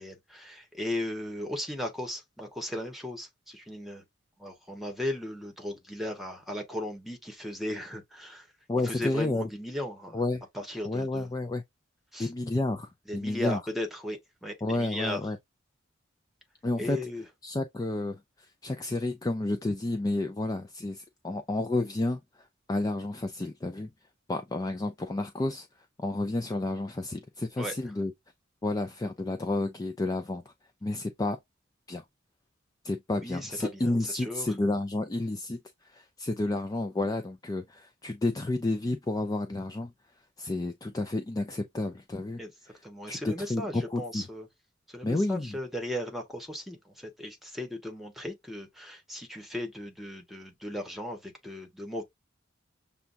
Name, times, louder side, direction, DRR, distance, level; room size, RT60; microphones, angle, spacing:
voice 1, 0.0-4.0 4.4-8.5 8.8-10.2 10.5-11.3 12.1-12.3 13.1-15.2 16.8-17.2 27.6-27.7 33.2-34.5 42.4-42.5 42.8-44.5 44.9-52.0, left 1 dB, ahead, 1.1 m, -36 dB
voice 2, 8.7-9.5 10.1-10.4 10.8-11.6 12.2-13.6 14.6-15.4 16.6-17.0 17.4-22.2 22.7-23.9 24.3-25.7 26.0-28.1 28.6-30.4 30.8-31.4 31.9-32.0 32.8-39.9 40.4-42.4 43.1-44.3 45.0-45.6, left 2 dB, 20° left, 0.4 m, -31 dB
6.8 x 2.3 x 2.5 m
head